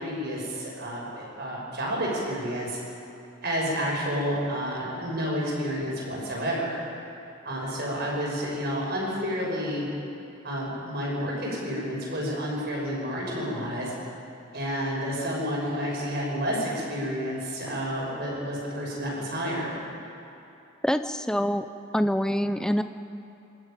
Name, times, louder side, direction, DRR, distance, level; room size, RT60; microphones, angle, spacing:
voice 1, 0.0-2.8 3.4-6.8 7.4-9.8 10.4-13.9 14.5-19.8, equal, 50° right, -3 dB, 6.2 m, -30 dB
voice 2, 20.8-21.6 21.9-22.8, equal, 5° left, 8 dB, 0.5 m, -25 dB
25.5 x 13.0 x 9.0 m, 2.9 s
head